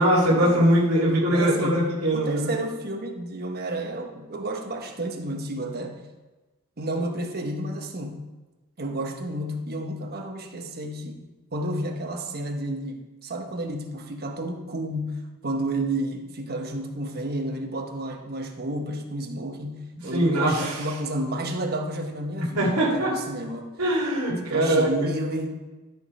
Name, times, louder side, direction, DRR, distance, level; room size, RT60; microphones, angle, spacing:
voice 1, 0.0-2.5 20.1-20.9 22.6-23.2 23.8-24.9, right 1 dB, 85° right, -5 dB, 2.4 m, -21 dB
voice 2, 1.3-1.8 2.1-6.0 6.8-8.2 8.8-23.7 24.4-25.5, right 1 dB, 45° right, 2 dB, 1.1 m, -31 dB
12.5 x 5.1 x 4.3 m, 1.2 s
head